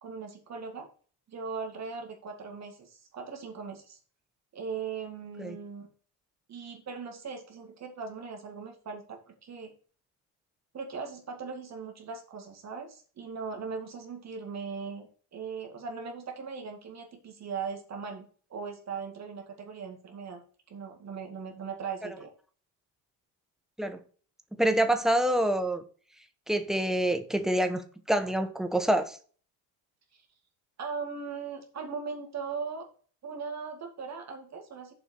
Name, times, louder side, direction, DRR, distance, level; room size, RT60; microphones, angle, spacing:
voice 1, 0.0-0.9 1.3-4.0 4.5-5.9 6.5-9.7 10.7-20.4 20.7-22.3 30.1-30.2 30.8-32.9 33.2-34.9, right 5 dB, 40° right, 2.1 m, -39 dB
voice 2, 24.5-25.8 26.5-29.2, right 1 dB, ahead, 1.1 m, -26 dB
7.2 x 4.6 x 6.9 m
cardioid pair, 120°, 43 cm